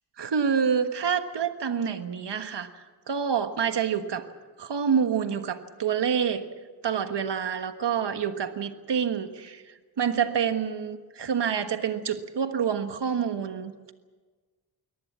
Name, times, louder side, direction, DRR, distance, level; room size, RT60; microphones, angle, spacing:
voice 1, 0.2-2.7 3.1-4.2 4.6-6.4 6.8-9.6 10.0-13.7, right 7 dB, 75° right, 8 dB, 1.5 m, -27 dB
23.5 x 18.5 x 7.5 m, 1.4 s
wide cardioid pair, 90°, 42 cm